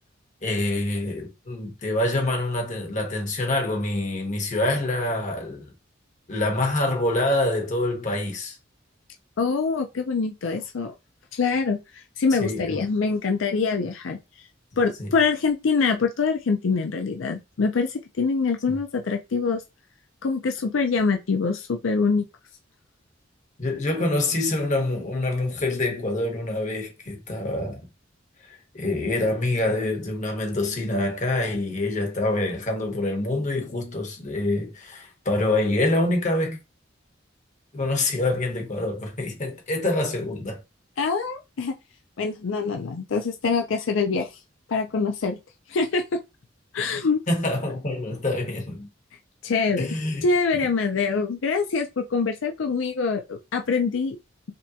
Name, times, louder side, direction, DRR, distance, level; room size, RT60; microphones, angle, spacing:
voice 1, 0.4-5.6 6.3-8.6 12.4-12.8 15.0-15.1 23.6-27.8 28.7-36.6 37.7-40.6 47.3-48.9 49.8-50.2, left 2 dB, 40° left, 1.2 m, -26 dB
voice 2, 9.4-10.9 11.3-11.8 12.2-14.2 14.8-19.6 20.2-22.3 41.0-41.8 42.2-44.3 44.7-45.4 45.7-46.0 46.7-47.2 49.4-49.9 50.2-54.2, left 4 dB, 85° left, 0.5 m, -24 dB
5.1 x 2.3 x 2.8 m
head